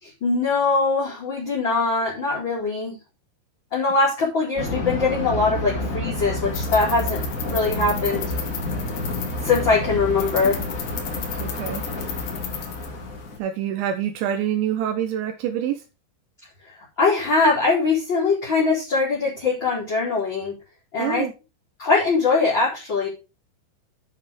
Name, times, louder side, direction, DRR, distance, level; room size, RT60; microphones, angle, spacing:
voice 1, 0.0-3.0 3.7-8.3 9.4-10.6 17.0-20.5 20.9-21.3 21.8-23.1, left 3 dB, 25° left, -7 dB, 4.3 m, -22 dB
Thunder, 4.5-13.4, left 2 dB, 45° left, 1.0 m, -29 dB
sound 1, 6.1-13.4, left 9 dB, 80° left, 4.2 m, -36 dB
voice 2, 11.4-11.9 13.4-15.8 21.0-21.3, right 10 dB, 80° right, 5 dB, 3.3 m, -26 dB
9.9 x 7.0 x 5.0 m, 0.29 s
omnidirectional pair, 5.4 m